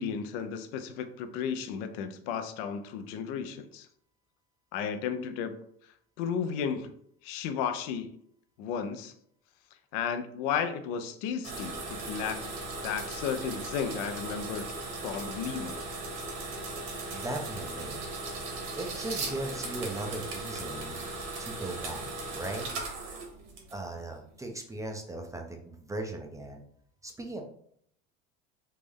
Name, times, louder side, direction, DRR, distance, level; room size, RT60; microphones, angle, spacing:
voice 1, 0.0-3.9 4.7-5.5 6.2-6.9 7.2-8.1 8.6-9.1 9.9-12.6 12.8-14.7 15.0-15.8, left 7 dB, 70° left, 9 dB, 0.5 m, -33 dB
sound 1, 11.4-24.0, right 3 dB, 70° right, 1.1 m, -38 dB
voice 2, 17.1-18.0 18.8-21.0 21.4-22.1 22.3-22.7 23.7-26.6 27.0-27.4, right 2 dB, 10° right, 3 dB, 0.3 m, -38 dB
3.2 x 2.0 x 3.5 m, 0.67 s
supercardioid pair, 110°, 33 cm